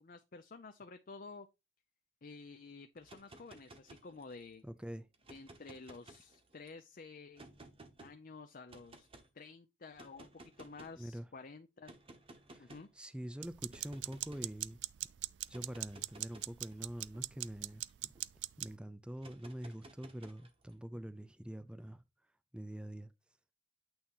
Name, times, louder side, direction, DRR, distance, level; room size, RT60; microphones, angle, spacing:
voice 1, 0.0-1.5 2.2-4.6 5.3-7.5 8.0-9.1 9.3-11.9 12.6-12.9, left 4 dB, 50° left, 0.6 m, -51 dB
sound 1, 3.0-4.5 5.1-6.7 7.4-8.1 8.7-9.3 9.9-11.0 11.9-12.9 13.7-14.5 15.4-18.2 19.2-20.7, right 2 dB, 30° right, 1.0 m, -57 dB
voice 2, 4.6-5.1 11.0-11.3 12.5-14.8 15.5-18.1 18.6-22.0 22.5-23.1, right 1 dB, 5° right, 0.5 m, -45 dB
sound 2, 13.4-18.8, right 16 dB, 70° right, 0.3 m, -41 dB
8.7 x 2.9 x 5.4 m
head